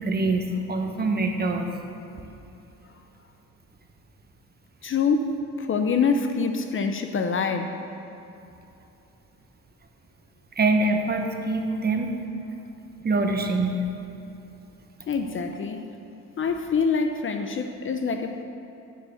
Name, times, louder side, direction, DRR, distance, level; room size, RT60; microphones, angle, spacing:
voice 1, 0.0-1.7 10.6-12.1 13.0-13.9, right 2 dB, 30° right, 4 dB, 1.0 m, -24 dB
voice 2, 4.8-7.7 15.1-15.8 16.4-18.4, left 5 dB, 45° left, 6 dB, 0.6 m, -25 dB
10.0 x 4.9 x 6.7 m, 2.9 s
cardioid pair, 90°, 30 cm